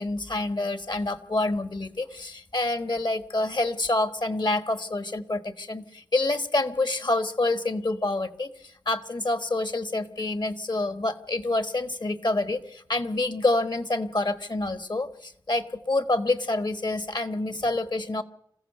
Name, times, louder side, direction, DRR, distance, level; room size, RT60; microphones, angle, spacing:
voice 1, 0.0-18.2, left 2 dB, 65° left, 10 dB, 1.4 m, -27 dB
26.5 x 15.5 x 6.7 m, 0.73 s
wide cardioid pair, 45°, 8 cm